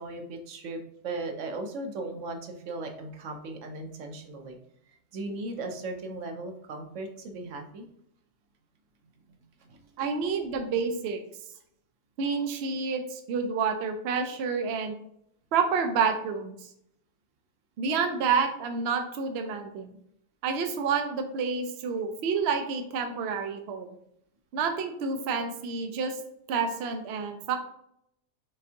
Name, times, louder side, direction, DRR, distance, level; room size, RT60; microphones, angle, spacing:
voice 1, 0.0-4.6 5.1-7.9 9.6-10.1, right 2 dB, 80° right, 5 dB, 1.1 m, -37 dB
voice 2, 10.0-11.2 12.2-14.9 15.5-16.5 17.8-19.9 20.4-23.9 24.5-26.2 26.5-27.5, right 5 dB, 65° right, 6 dB, 0.8 m, -29 dB
5.1 x 3.4 x 2.8 m, 0.73 s
omnidirectional pair, 1.3 m